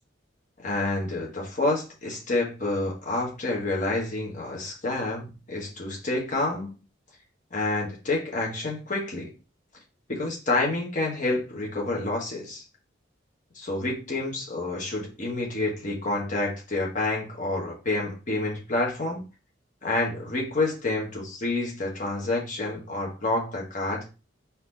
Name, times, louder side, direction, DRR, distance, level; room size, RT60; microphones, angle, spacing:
voice 1, 0.6-6.7 7.5-9.3 10.1-12.6 13.5-19.2 19.8-24.0, left 2 dB, 40° left, 1.3 m, -28 dB
4.2 x 2.9 x 3.9 m
head